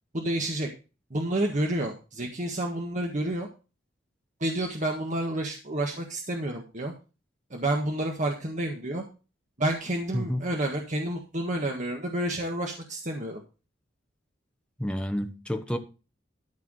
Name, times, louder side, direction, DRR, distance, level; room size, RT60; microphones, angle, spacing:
voice 1, 0.1-0.7 1.1-3.5 4.4-6.9 7.5-9.0 9.6-13.4, right 1 dB, 40° right, 1.5 m, -29 dB
voice 2, 10.1-10.5 14.8-15.8, equal, 5° left, 1.2 m, -29 dB
13.0 x 4.7 x 6.3 m
head